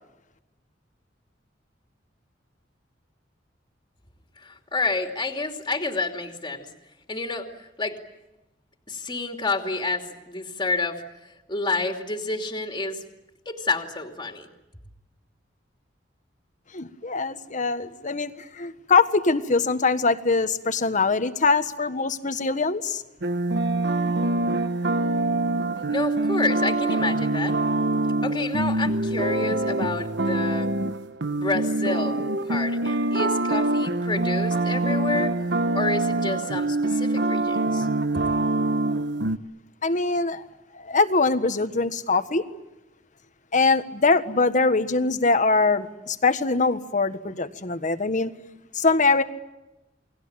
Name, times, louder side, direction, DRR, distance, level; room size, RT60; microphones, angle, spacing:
voice 1, 4.4-6.7 7.1-8.0 8.9-13.0 13.4-14.5 25.9-27.5 28.2-30.7 31.3-32.2 32.4-35.3 35.7-37.9, left 3 dB, 25° left, 3 dB, 2.8 m, -29 dB
voice 2, 16.7-23.0 39.8-40.4 40.7-42.4 43.5-48.3 48.7-49.2, left 3 dB, 45° left, 10 dB, 1.5 m, -23 dB
sound 1, 23.2-39.4, right 2 dB, 70° right, 1.3 m, -24 dB
29.0 x 21.5 x 8.9 m, 1.0 s
head